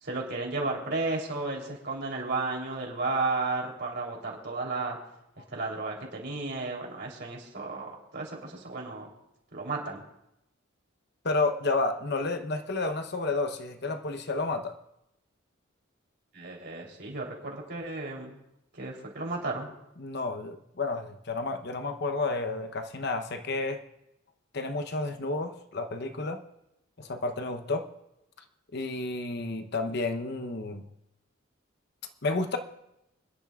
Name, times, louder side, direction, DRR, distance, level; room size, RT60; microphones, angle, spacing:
voice 1, 0.0-5.0 5.5-9.1 9.5-10.0 16.3-18.4 18.7-19.7, right 3 dB, 55° right, -1 dB, 3.5 m, -33 dB
voice 2, 11.2-14.7 20.0-23.8 24.5-26.4 27.0-27.9 28.7-30.8 32.2-32.6, left 3 dB, 55° left, 7 dB, 0.9 m, -31 dB
29.0 x 10.5 x 2.4 m, 0.85 s
head